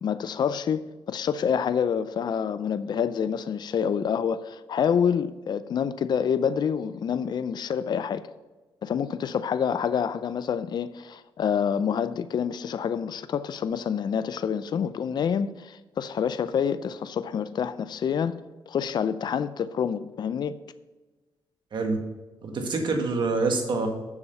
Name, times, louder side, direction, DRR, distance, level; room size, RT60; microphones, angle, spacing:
voice 1, 0.0-8.3 8.8-18.3 18.7-20.6, left 7 dB, 50° left, 0.4 m, -27 dB
voice 2, 22.4-23.9, right 3 dB, 60° right, 1.7 m, -26 dB
7.1 x 6.6 x 5.4 m
cardioid pair, 85°, 9 cm